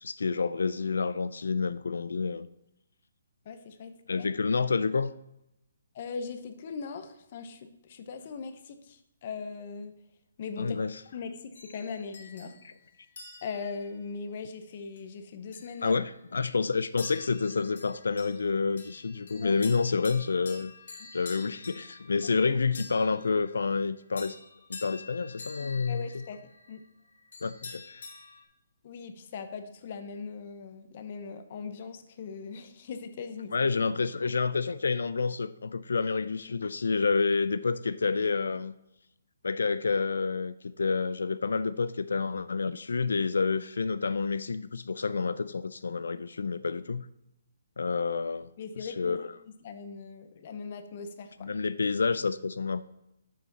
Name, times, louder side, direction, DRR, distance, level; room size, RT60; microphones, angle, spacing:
voice 1, 0.0-2.5 4.1-5.1 10.6-11.0 15.8-20.7 21.1-24.4 24.7-26.0 27.4-28.0 33.5-38.8 39.4-47.1 47.8-48.5 48.8-49.2 51.4-52.8, left 4 dB, 90° left, 14 dB, 0.3 m, -29 dB
voice 2, 3.4-4.3 5.9-9.9 10.4-10.8 11.1-12.6 13.4-16.0 19.3-19.6 21.0-21.1 25.6-26.4 26.7-26.8 28.8-33.5 48.6-49.2 49.6-51.5, left 5 dB, 35° left, 8 dB, 0.8 m, -40 dB
sound 1, 11.5-13.9 14.7-15.0 15.5-16.4 17.0-28.4, left 4 dB, 65° left, 1.6 m, -48 dB
7.4 x 5.6 x 4.1 m, 0.85 s
hypercardioid pair, 170°, 0 cm